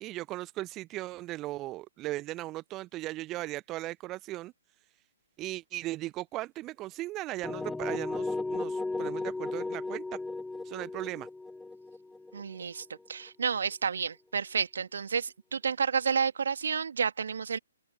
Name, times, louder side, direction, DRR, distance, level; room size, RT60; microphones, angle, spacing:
voice 1, 0.0-4.5 5.4-10.2 10.6-11.3, right 17 dB, 20° right, 1.0 m, -37 dB
sound 1, 7.4-13.3, left 2 dB, 5° left, 1.6 m, -35 dB
voice 2, 12.3-17.6, right 6 dB, 55° right, 2.4 m, -30 dB
open air
figure-of-eight pair, 130°, 0 cm